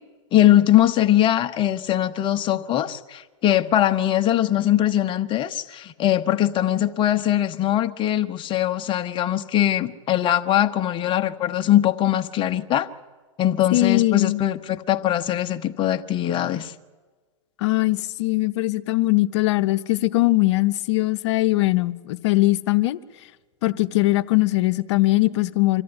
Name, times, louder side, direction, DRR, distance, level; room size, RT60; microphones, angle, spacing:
voice 1, 0.3-12.9 13.4-16.7, left 12 dB, 30° left, 8 dB, 1.1 m, -21 dB
voice 2, 13.7-14.4 17.6-23.0 23.6-25.8, left 19 dB, 60° left, 10 dB, 0.9 m, -21 dB
25.0 x 14.0 x 9.8 m, 1.4 s
hypercardioid pair, 120°, 16 cm